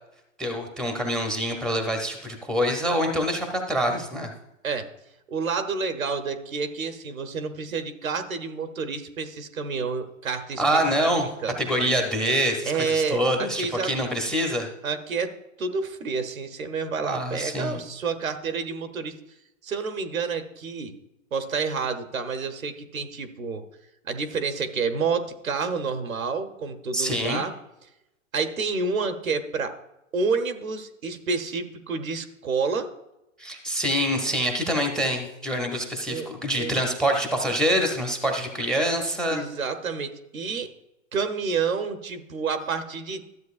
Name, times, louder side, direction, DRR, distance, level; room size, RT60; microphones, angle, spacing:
voice 1, 0.4-4.3 10.6-11.3 11.6-14.7 17.1-17.8 26.9-27.4 33.4-39.4, equal, ahead, 4 dB, 0.6 m, -25 dB
voice 2, 5.3-10.8 11.4-11.6 12.7-13.2 13.5-13.9 14.8-19.1 19.6-21.0 21.3-23.6 24.0-27.5 28.3-29.8 30.1-32.9 36.1-36.3 36.5-36.8 39.3-40.7 41.1-43.2, right 5 dB, 90° right, 8 dB, 1.0 m, -29 dB
12.5 x 7.7 x 2.4 m, 0.90 s
hypercardioid pair, 120°, 40 cm